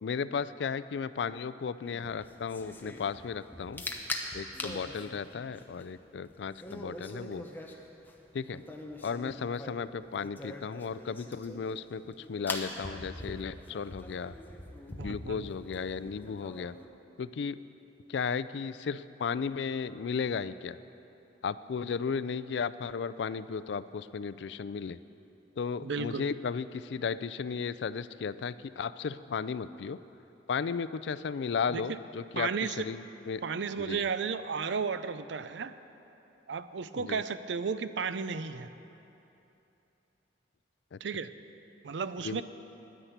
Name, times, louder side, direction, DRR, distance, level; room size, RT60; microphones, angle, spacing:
voice 1, 0.0-3.8 4.3-7.4 8.3-8.6 9.0-14.3 14.9-16.7 17.2-17.6 18.1-20.8 21.4-25.0 25.6-30.0 30.5-33.4 33.8-34.0 37.0-37.2 40.9-41.0 42.2-42.4, left 6 dB, 70° left, 15 dB, 0.4 m, -35 dB
sound 1, 1.9-16.8, left 1 dB, 10° left, 0.9 m, -43 dB
voice 2, 15.0-15.5 25.8-26.2 31.7-31.8 32.3-32.9 33.4-35.8 36.5-38.7 41.0-41.3 41.8-42.4, right 5 dB, 80° right, 13 dB, 0.5 m, -33 dB
10.5 x 10.0 x 8.0 m, 2.9 s
head